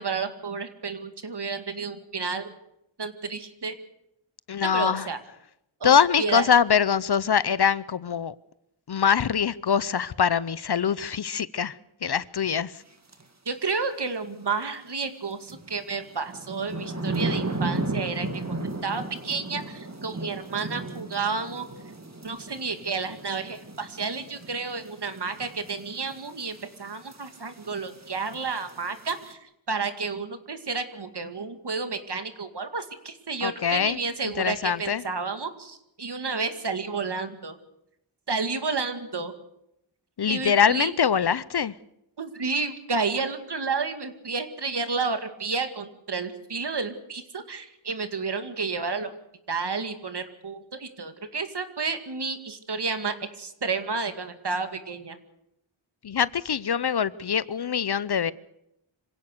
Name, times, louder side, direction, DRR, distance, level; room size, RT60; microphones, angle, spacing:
voice 1, 0.0-2.5 3.0-3.8 4.6-5.2 5.8-6.5 13.5-21.7 22.2-37.6 38.3-39.3 40.3-40.9 42.2-49.1 49.5-55.2, right 4 dB, 55° right, 2.3 m, -31 dB
voice 2, 4.5-5.1 5.8-8.3 8.9-11.8 12.0-12.7 33.4-34.0 34.4-35.0 40.2-41.7 56.0-58.3, left 7 dB, 55° left, 0.7 m, -23 dB
sound 1, 13.1-13.2 15.5-29.3, right 2 dB, 35° right, 2.1 m, -35 dB
26.0 x 16.5 x 6.8 m
wide cardioid pair, 105°, 47 cm